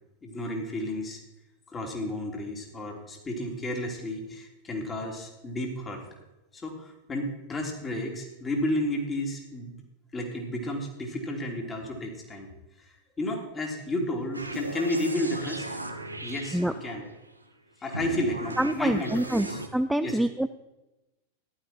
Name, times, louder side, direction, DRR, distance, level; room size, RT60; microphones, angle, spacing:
voice 1, 0.2-1.2 1.7-6.1 6.5-9.7 10.1-12.5 12.8-15.6 16.2-17.1 17.8-19.6 20.0-20.2, left 1 dB, 20° left, 1 dB, 3.2 m, -32 dB
sound 1, 14.3-17.2 17.9-19.7, right 1 dB, 85° right, 1.3 m, -37 dB
voice 2, 18.6-19.5 19.7-20.5, right 1 dB, 5° right, 11 dB, 0.4 m, -26 dB
14.5 x 11.5 x 4.5 m, 1.0 s
figure-of-eight pair, 90°, 0 cm